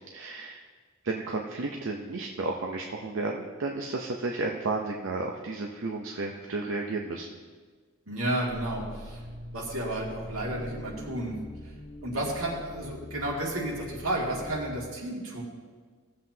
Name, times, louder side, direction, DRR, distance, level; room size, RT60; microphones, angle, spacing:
voice 1, 0.1-0.6 1.0-7.3, right 3 dB, 65° right, 1 dB, 0.7 m, -32 dB
voice 2, 8.1-9.2 9.5-11.3 12.0-15.4, right 1 dB, 85° right, -3 dB, 2.3 m, -32 dB
sound 1, 8.5-14.8, left 1 dB, 75° left, 1.1 m, -43 dB
16.5 x 7.5 x 2.8 m, 1.5 s
head